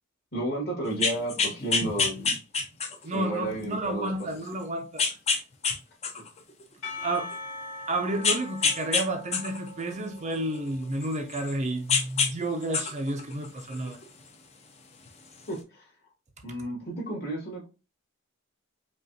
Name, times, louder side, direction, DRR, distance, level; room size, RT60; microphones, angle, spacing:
voice 1, 0.3-2.4 3.1-4.1 15.5-15.9 16.4-17.6, right 1 dB, 45° left, 2.0 m, -32 dB
sound 1, 0.9-3.1 3.7-3.8 5.0-5.8 6.0-7.3 8.2-9.0 9.3-11.5 11.9-12.3 12.6-14.0 15.1-15.2, left 5 dB, 30° left, 0.5 m, -27 dB
voice 2, 3.0-5.1 7.0-7.3 7.9-14.0, right 1 dB, 30° right, 0.5 m, -31 dB
Percussion / Church bell, 6.8-11.2, left 2 dB, 70° left, 2.2 m, -42 dB
5.1 x 2.4 x 2.7 m
head